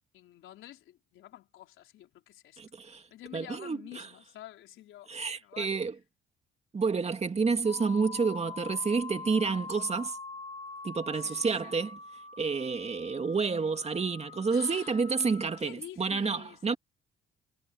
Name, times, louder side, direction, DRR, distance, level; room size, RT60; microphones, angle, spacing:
voice 1, 0.1-2.6 3.1-5.8 11.1-11.8 14.5-15.0 15.6-16.7, left 13 dB, 85° left, 4.3 m, -49 dB
voice 2, 2.6-3.0 3.3-4.0 5.1-5.9 6.7-10.2 10.8-11.9 12.4-16.8, right 4 dB, 30° right, 2.4 m, -29 dB
sound 1, 7.6-15.6, left 4 dB, 30° left, 2.1 m, -44 dB
cardioid pair, 90°, 20 cm